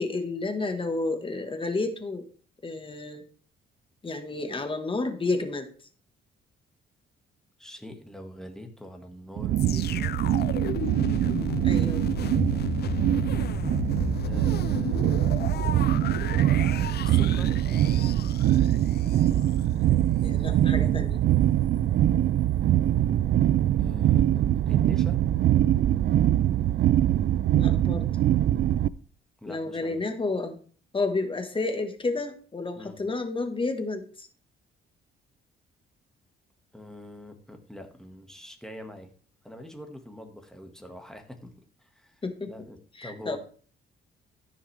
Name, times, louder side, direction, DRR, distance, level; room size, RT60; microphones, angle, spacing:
voice 1, 0.0-2.2 2.6-3.2 4.0-5.7 11.6-12.1 20.2-21.2 27.5-28.1 29.4-30.6 30.9-34.3 42.2-42.5 43.0-43.4, left 3 dB, 25° left, 6 dB, 1.5 m, -30 dB
voice 2, 7.6-10.2 14.2-15.2 16.1-17.6 23.8-25.2 29.4-30.0 32.8-33.0 36.7-39.1 39.4-41.5 41.8-43.4, left 1 dB, 5° left, 4 dB, 1.8 m, -44 dB
sound 1, 9.4-28.9, right 12 dB, 60° right, 0.4 m, -23 dB
sound 2, 9.6-19.6 20.2-20.3, left 11 dB, 55° left, 0.5 m, -35 dB
13.5 x 5.8 x 3.4 m, 0.44 s
cardioid pair, 90°, 20 cm